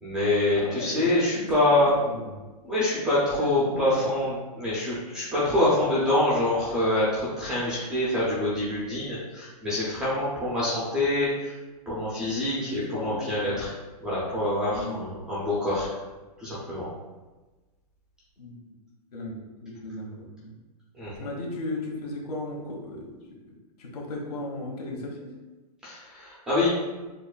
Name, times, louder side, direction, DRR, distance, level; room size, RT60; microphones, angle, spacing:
voice 1, 0.0-1.9 2.6-11.5 11.9-13.7 14.0-15.9 16.4-16.9 21.0-21.3 25.8-26.7, left 1 dB, 5° right, -8 dB, 0.4 m, -25 dB
voice 2, 0.5-1.5 1.8-2.4 3.3-4.0 5.4-5.7 12.5-13.6 14.7-15.1 18.4-18.6 19.1-20.5 21.2-23.1 23.8-25.3, left 2 dB, 70° left, -1 dB, 1.2 m, -36 dB
6.6 x 2.2 x 2.3 m, 1.2 s
hypercardioid pair, 170°, 21 cm